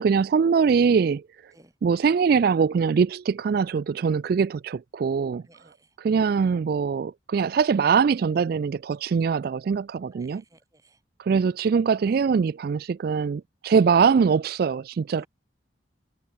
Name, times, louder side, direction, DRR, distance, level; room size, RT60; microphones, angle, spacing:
voice 1, 0.0-1.5 1.8-5.4 6.0-10.4 11.2-15.3, right 6 dB, 55° right, 0.3 m, -22 dB
voice 2, 5.5-5.9 10.1-11.0 15.2-15.3, right 1 dB, 20° right, 2.5 m, -56 dB
head